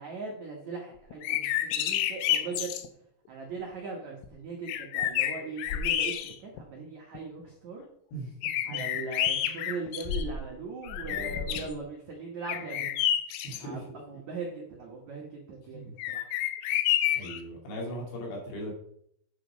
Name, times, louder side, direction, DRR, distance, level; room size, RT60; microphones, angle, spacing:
voice 1, 0.0-2.7 3.3-7.8 8.6-12.9 13.6-15.8 16.1-16.3, right 4 dB, 85° right, -1 dB, 1.6 m, -39 dB
sound 1, 1.1-2.9 4.2-4.3 4.7-6.6 7.1-7.2 8.4-10.5 10.8-11.7 12.4-13.6 16.0-17.4, left 11 dB, 85° left, 3.1 m, -29 dB
voice 2, 8.1-8.8 9.4-9.6 11.0-11.7 13.4-14.0 15.7-15.9 17.2-18.7, right 1 dB, 65° left, -2 dB, 4.4 m, -39 dB
9.3 x 5.9 x 5.0 m, 0.70 s
omnidirectional pair, 5.4 m